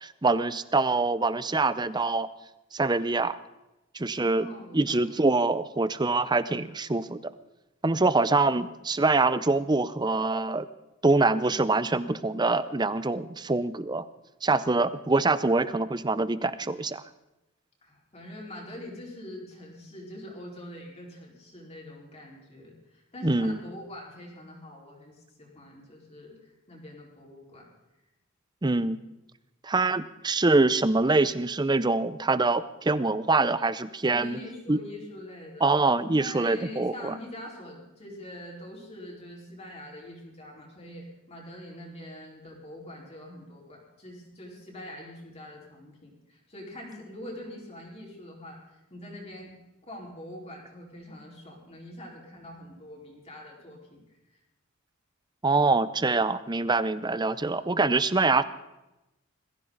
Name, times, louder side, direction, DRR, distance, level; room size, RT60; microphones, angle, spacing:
voice 1, 0.0-2.3 2.7-3.4 3.9-4.5 4.7-7.2 7.8-10.7 11.0-14.0 14.4-17.0 23.2-23.6 28.6-29.0 29.6-34.4 34.7-34.8 35.6-37.1 55.4-58.4, right 3 dB, 20° right, 15 dB, 0.6 m, -24 dB
voice 2, 4.1-5.2 17.8-27.7 34.1-35.7 36.0-49.5 49.9-54.0 54.3-54.4, left 1 dB, 30° left, -2 dB, 4.6 m, -44 dB
21.0 x 15.5 x 4.1 m, 0.96 s
head